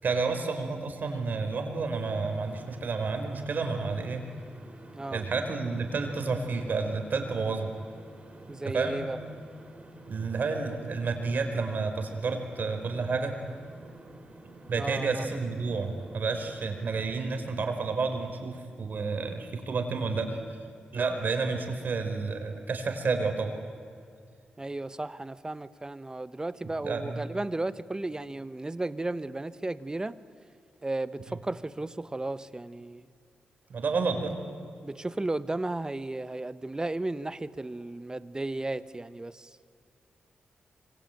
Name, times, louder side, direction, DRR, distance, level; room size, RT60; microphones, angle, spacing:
voice 1, 0.0-4.2 5.1-7.7 8.7-9.0 10.1-13.3 14.7-20.4 20.9-23.5 26.8-27.2 33.7-34.3, right 4 dB, 60° right, 5 dB, 4.7 m, -30 dB
sound 1, 2.0-17.1, right 2 dB, 40° right, 5.7 m, -50 dB
voice 2, 4.9-5.3 8.5-9.2 14.8-15.2 24.6-30.2 30.8-33.1 34.8-39.5, right 2 dB, 20° right, 14 dB, 1.1 m, -34 dB
25.0 x 24.5 x 9.3 m, 2.2 s
cardioid pair, 65°, 3 cm